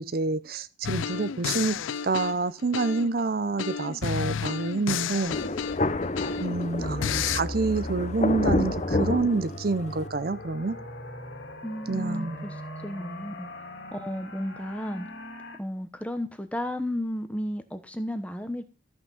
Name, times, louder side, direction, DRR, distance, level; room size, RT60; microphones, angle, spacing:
voice 1, 0.0-1.8 2.0-5.4 6.4-10.8 11.9-12.5, right 3 dB, 50° right, 0.5 m, -28 dB
sound 1, 0.8-3.2 3.6-6.6 7.0-7.4, left 7 dB, 90° left, 0.4 m, -31 dB
Thunder, 5.3-10.1, left 2 dB, 35° left, 0.6 m, -29 dB
sound 2, 6.8-15.6, left 1 dB, 65° left, 2.2 m, -39 dB
voice 2, 11.6-15.1 15.6-18.6, equal, 5° left, 1.0 m, -33 dB
13.5 x 5.9 x 5.6 m
head